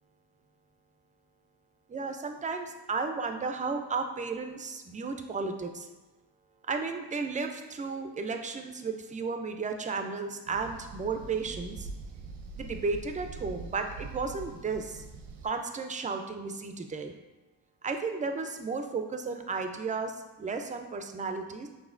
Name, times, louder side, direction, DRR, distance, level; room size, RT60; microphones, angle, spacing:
voice 1, 1.9-5.9 6.6-11.9 12.6-15.0 15.4-17.1 17.8-21.7, right 4 dB, 20° right, 6 dB, 0.3 m, -34 dB
sound 1, 10.5-15.5, right 4 dB, 85° right, 0.7 m, -43 dB
6.2 x 3.0 x 2.5 m, 1.2 s
cardioid pair, 95°, 46 cm